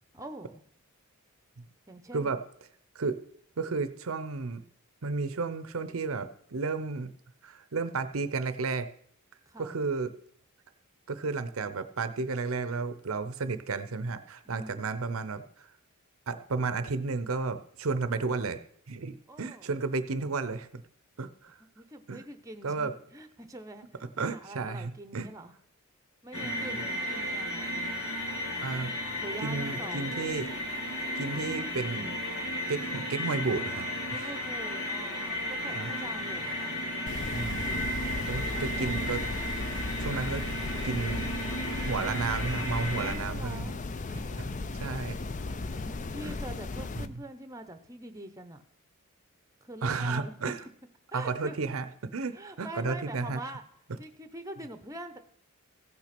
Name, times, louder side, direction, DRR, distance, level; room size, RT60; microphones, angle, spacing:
voice 1, 0.1-0.6 1.9-2.3 9.5-9.8 14.4-14.8 19.3-19.7 21.8-25.5 26.2-27.7 29.2-30.1 34.1-36.8 37.7-37.8 38.2-38.9 42.9-43.8 45.4-48.6 49.6-50.5 51.1-51.6 52.3-53.6 54.0-55.2, right 1 dB, 15° right, 8 dB, 0.7 m, -44 dB
voice 2, 3.6-4.6 5.0-7.1 7.4-8.9 9.6-10.1 11.1-15.7 16.3-18.6 18.9-20.8 21.2-21.5 22.1-22.2 22.6-22.9 24.0-25.3 26.4-26.6 28.6-28.9 29.4-30.5 31.2-32.2 32.7-34.3 35.6-36.0 37.3-39.2 39.7-40.4 40.8-41.3 41.7-43.7 44.1-45.2 46.2-46.3 47.0-47.1 49.8-50.6 51.1-53.4, right 4 dB, 70° right, 12 dB, 0.7 m, -33 dB
sound 1, 26.3-43.2, equal, 75° left, 1.9 m, -34 dB
sound 2, 37.1-47.1, left 3 dB, 35° left, 0.4 m, -36 dB
15.0 x 6.1 x 5.9 m, 0.64 s
head